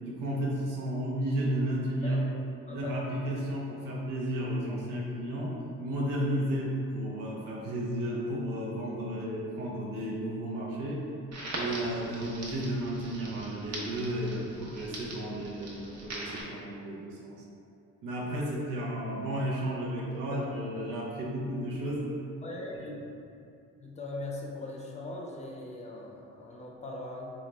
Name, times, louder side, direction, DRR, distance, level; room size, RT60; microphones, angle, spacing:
voice 1, 0.0-2.2 2.7-11.0 11.5-17.4 18.0-22.1, right 1 dB, 90° right, -3 dB, 0.8 m, -33 dB
voice 2, 2.0-3.0 20.3-20.4 22.4-23.0 23.8-27.3, left 2 dB, 20° left, -1 dB, 0.6 m, -40 dB
Crackle, 11.3-16.4, right 1 dB, 55° right, 0.9 m, -41 dB
3.8 x 2.4 x 3.1 m, 2.5 s
cardioid pair, 75°, 32 cm